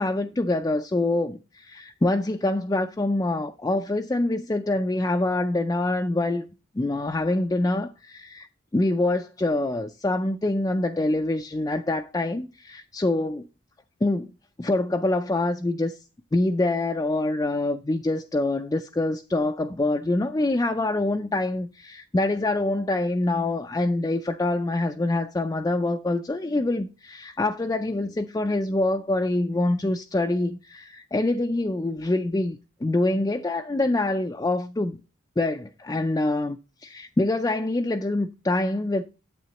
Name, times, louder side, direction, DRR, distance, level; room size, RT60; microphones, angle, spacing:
voice 1, 0.0-6.5 6.8-8.5 8.7-13.5 14.0-14.3 14.6-16.0 16.3-35.0 35.4-36.6 36.8-39.0, left 2 dB, 20° left, 0.3 m, -25 dB
9.3 x 7.7 x 2.9 m
head